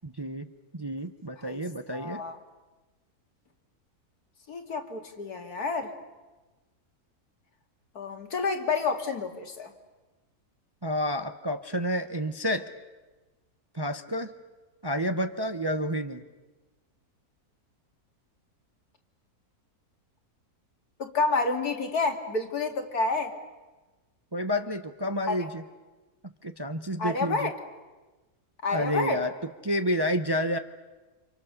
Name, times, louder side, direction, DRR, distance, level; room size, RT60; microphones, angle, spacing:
voice 1, 0.0-0.5 0.7-2.2 10.8-12.7 13.7-14.3 14.8-16.2 24.3-25.6 26.2-27.5 28.7-29.3 29.6-30.6, equal, 20° right, 8 dB, 0.7 m, -29 dB
voice 2, 1.9-2.4 4.5-5.9 7.9-9.7 21.0-23.3 25.3-25.5 27.0-27.5 28.6-29.2, left 3 dB, 80° left, 4 dB, 2.7 m, -29 dB
29.5 x 27.0 x 6.6 m, 1.2 s
omnidirectional pair, 1.6 m